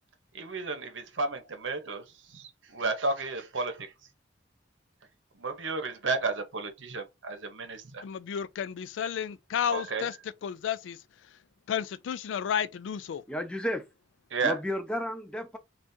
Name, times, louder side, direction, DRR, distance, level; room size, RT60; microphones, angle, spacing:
voice 1, 0.3-3.9 5.4-8.0 9.7-10.1 14.3-14.6, right 3 dB, 90° right, 0.8 m, -32 dB
voice 2, 8.0-10.1 10.4-11.0 11.7-13.2, left 8 dB, 80° left, 0.3 m, -32 dB
voice 3, 13.3-13.8 14.4-15.6, equal, 5° left, 0.5 m, -32 dB
2.6 x 2.4 x 3.5 m
head